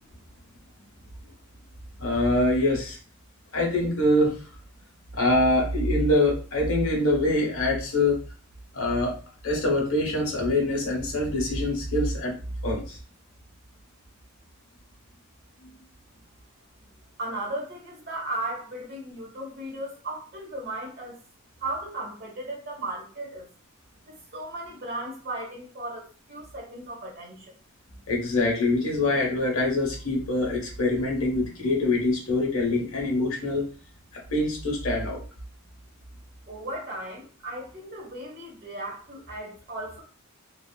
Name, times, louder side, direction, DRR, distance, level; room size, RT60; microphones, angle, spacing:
voice 1, 2.0-3.0 3.5-4.5 5.1-8.2 8.7-9.2 9.4-12.4 12.6-13.0 28.1-33.6 34.3-35.2, left 2 dB, 65° left, -1 dB, 1.1 m, -24 dB
voice 2, 17.2-21.2 21.6-23.5 24.1-27.5 36.5-40.0, right 1 dB, 45° right, -2 dB, 1.2 m, -36 dB
3.3 x 2.3 x 2.3 m, 0.39 s
head